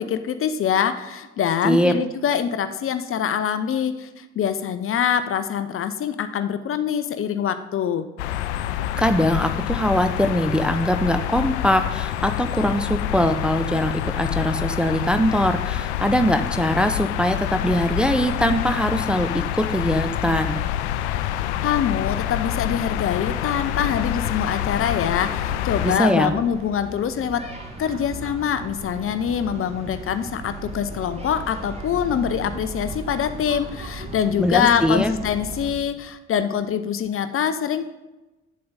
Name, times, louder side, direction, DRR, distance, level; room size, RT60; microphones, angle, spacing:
voice 1, 0.0-8.1 21.6-27.4 27.8-37.8, left 8 dB, 40° left, 10 dB, 0.7 m, -24 dB
sound 1, 8.2-26.0, left 12 dB, 75° left, 0.5 m, -27 dB
voice 2, 9.0-17.4 17.6-19.3 19.6-20.6 25.8-26.3 34.4-35.1, equal, 5° right, 7 dB, 0.7 m, -21 dB
sound 2, 23.1-35.7, right 1 dB, 20° right, 1.9 m, -37 dB
9.3 x 7.6 x 4.1 m, 1.1 s
figure-of-eight pair, 50°, 34 cm